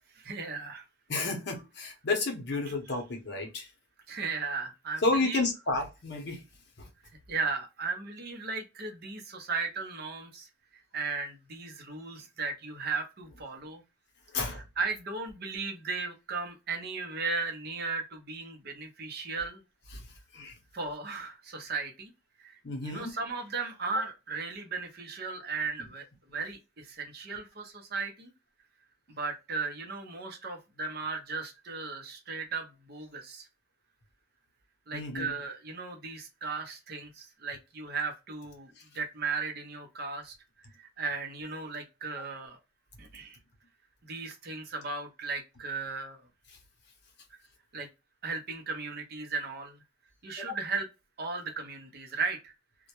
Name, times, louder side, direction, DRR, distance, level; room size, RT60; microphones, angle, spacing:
voice 1, 0.1-0.8 2.7-3.0 4.1-5.4 7.3-13.8 14.3-19.6 20.7-22.1 22.4-28.3 29.1-33.5 34.9-42.6 43.0-43.4 44.0-46.3 47.7-47.9 48.2-49.8 50.2-50.9 51.2-52.5, right 4 dB, 50° right, 0.6 m, -36 dB
voice 2, 1.1-3.7 5.0-6.4 6.8-6.9 14.3-14.6 19.9-20.0 20.3-20.5 22.6-23.1 34.9-35.3, left 3 dB, 55° left, 0.7 m, -31 dB
2.2 x 2.1 x 2.8 m
head